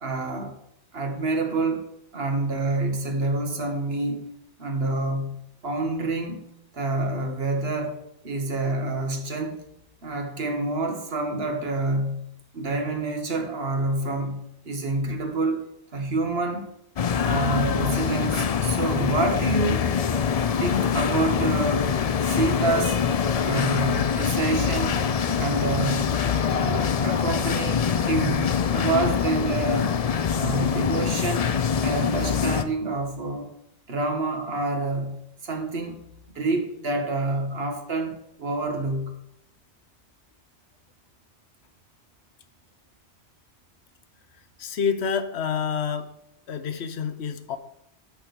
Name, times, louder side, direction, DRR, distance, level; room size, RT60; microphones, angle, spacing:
voice 1, 0.0-0.5 0.9-1.9 2.1-4.3 4.6-6.4 6.7-9.6 10.0-16.7 17.2-19.9 20.6-23.0 23.4-25.0 25.3-26.2 26.5-30.0 30.3-31.5 31.8-33.6 33.9-36.0 36.3-39.2, right 2 dB, 65° right, 5 dB, 1.5 m, -28 dB
sound 1, 17.0-32.6, left 7 dB, 50° left, 0.4 m, -24 dB
voice 2, 44.6-46.1 46.5-47.6, left 6 dB, 75° left, 10 dB, 1.0 m, -28 dB
6.2 x 6.2 x 6.6 m, 0.75 s
omnidirectional pair, 1.1 m